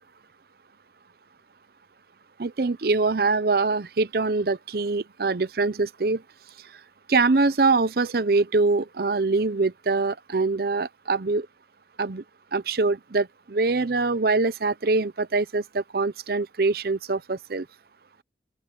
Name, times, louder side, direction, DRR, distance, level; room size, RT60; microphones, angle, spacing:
voice 1, 2.4-6.2 7.1-11.5 12.0-12.2 12.5-17.7, right 3 dB, 60° right, 0.7 m, -24 dB
open air
head